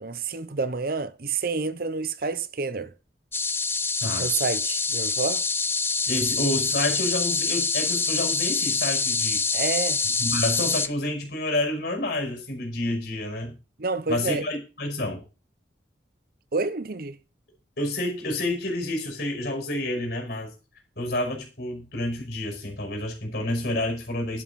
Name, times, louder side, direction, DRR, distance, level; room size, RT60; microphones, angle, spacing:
voice 1, 0.0-2.9 4.2-5.4 9.5-10.0 13.8-14.5 16.5-17.2, right 4 dB, 55° right, 0.8 m, -28 dB
sound 1, 3.3-10.9, left 4 dB, 15° left, 0.5 m, -25 dB
voice 2, 6.1-9.4 10.2-13.6 14.1-15.2 17.8-20.5 21.0-24.4, left 1 dB, 60° left, 5.4 m, -29 dB
11.5 x 9.3 x 4.2 m
head